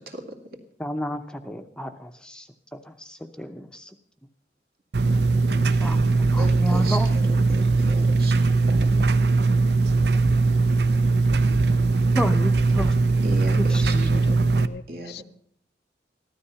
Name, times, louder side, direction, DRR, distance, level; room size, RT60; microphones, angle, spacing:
voice 1, 0.8-3.9 5.8-7.1 7.4-7.6 12.1-13.0 13.6-13.8, equal, 5° left, 0.7 m, -31 dB
sound 1, 4.9-14.7, right 3 dB, 75° right, 0.7 m, -20 dB
voice 2, 6.4-7.0 7.5-8.8 13.2-14.4 14.9-15.2, right 2 dB, 55° right, 2.3 m, -36 dB
voice 3, 13.9-15.2, left 2 dB, 70° left, 0.5 m, -38 dB
15.0 x 13.0 x 5.6 m
head